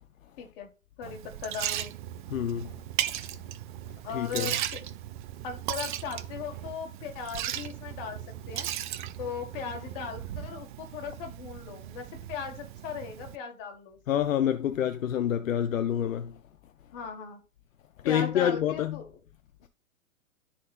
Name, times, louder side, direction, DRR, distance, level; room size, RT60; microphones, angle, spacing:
voice 1, 0.4-0.7 1.0-1.9 4.0-4.8 5.4-8.2 8.5-8.7 9.2-14.0 16.9-17.4 18.0-19.2, left 6 dB, 40° left, 1.8 m, -38 dB
Liquid, 1.0-13.4, right 12 dB, 40° right, 0.5 m, -37 dB
voice 2, 2.3-2.7 4.1-4.5 14.1-16.4 18.0-19.0, left 10 dB, 70° left, 0.6 m, -27 dB
12.0 x 4.3 x 2.5 m
figure-of-eight pair, 110°, 41 cm